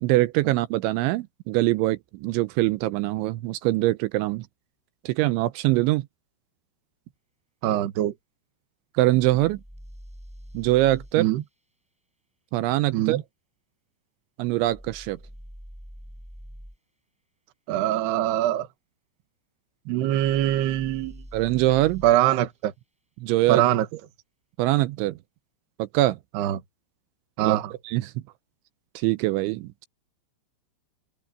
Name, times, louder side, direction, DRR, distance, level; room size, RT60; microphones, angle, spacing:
voice 1, 0.0-4.4 5.0-6.1 9.0-9.6 10.5-11.3 12.5-13.2 14.4-15.2 21.3-22.0 23.2-23.6 24.6-25.2 25.8-26.2 27.4-27.6 27.8-28.2 29.0-29.9, right 17 dB, 80° right, 3.0 m, -23 dB
voice 2, 7.6-8.1 11.2-11.4 12.9-13.2 17.7-18.7 19.9-21.2 22.0-22.7 23.5-23.9 26.3-26.6 27.4-27.7, right 13 dB, 65° right, 3.3 m, -23 dB
sound 1, 9.1-11.2 14.6-16.8 20.1-22.2, equal, ahead, 6.5 m, -44 dB
open air
omnidirectional pair, 5.6 m